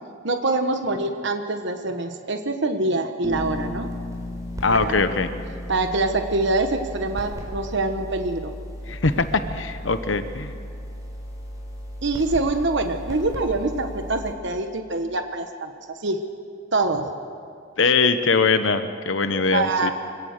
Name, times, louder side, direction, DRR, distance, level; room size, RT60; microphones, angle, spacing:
voice 1, 0.2-3.9 4.7-4.9 5.7-8.5 12.0-15.7 16.0-16.2 16.7-17.1 19.5-19.9, right 2 dB, 60° right, 6 dB, 1.2 m, -24 dB
Bass guitar, 3.2-7.3, left 2 dB, 10° left, 1.9 m, -37 dB
sound 1, 3.3-14.3, equal, 15° right, 4.3 m, -36 dB
voice 2, 4.6-5.3 8.9-10.5 17.8-19.9, left 4 dB, 70° left, 10 dB, 0.9 m, -22 dB
24.5 x 17.5 x 6.6 m, 2.3 s
head